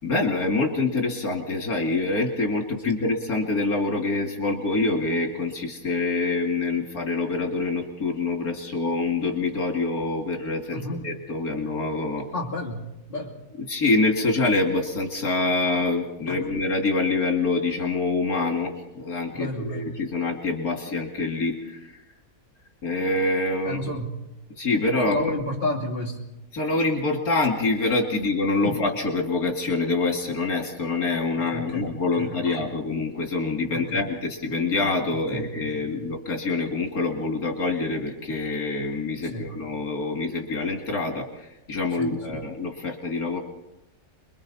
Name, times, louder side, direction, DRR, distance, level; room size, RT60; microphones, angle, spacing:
voice 1, 0.0-12.3 13.7-22.0 22.8-23.8 24.5-25.3 26.5-43.4, left 3 dB, 85° left, 1 dB, 2.9 m, -26 dB
voice 2, 10.7-11.0 12.3-13.4 16.3-16.4 19.3-19.9 23.6-24.1 25.0-26.2 28.6-28.8 31.5-31.9 32.2-32.7 33.7-34.0 35.3-36.1 39.3-39.5 42.0-42.4, left 1 dB, 35° left, -3 dB, 3.2 m, -31 dB
29.0 x 22.0 x 4.2 m, 0.92 s
omnidirectional pair, 1.5 m